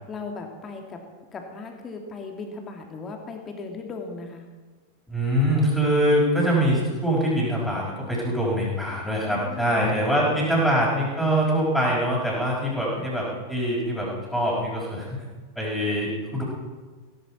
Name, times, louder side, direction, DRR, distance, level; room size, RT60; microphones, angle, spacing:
voice 1, 0.1-1.0 1.3-4.5 9.0-10.8 12.9-13.1, left 4 dB, 25° left, 3 dB, 2.6 m, -38 dB
voice 2, 5.1-15.2 15.5-16.4, equal, ahead, -9 dB, 5.0 m, -24 dB
16.0 x 15.5 x 4.4 m, 1.4 s
figure-of-eight pair, 90°, 0 cm